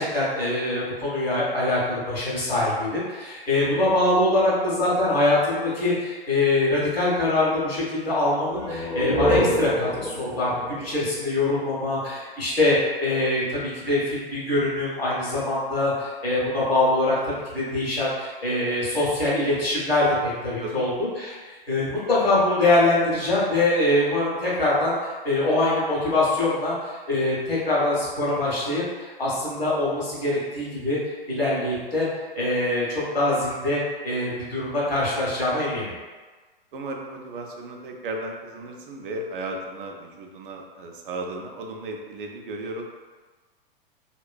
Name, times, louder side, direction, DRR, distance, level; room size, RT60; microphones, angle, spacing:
voice 1, 0.0-25.0 25.2-32.1 32.3-35.9, left 2 dB, 90° left, -7 dB, 1.2 m, -24 dB
sound 1, 8.5-12.0, equal, 20° left, 0.3 m, -27 dB
voice 2, 36.7-42.9, right 2 dB, 65° right, 2 dB, 0.5 m, -35 dB
2.9 x 2.5 x 2.2 m, 1.4 s
figure-of-eight pair, 105°, 29 cm